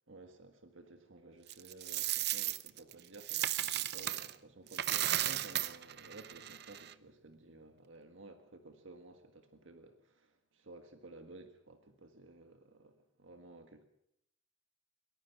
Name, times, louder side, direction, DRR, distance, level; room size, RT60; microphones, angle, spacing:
voice 1, 0.1-13.9, right 2 dB, 75° right, 1.7 m, -55 dB
Coin (dropping), 1.5-4.3 4.7-6.9, right 13 dB, 55° right, 0.7 m, -35 dB
22.5 x 20.5 x 6.0 m
head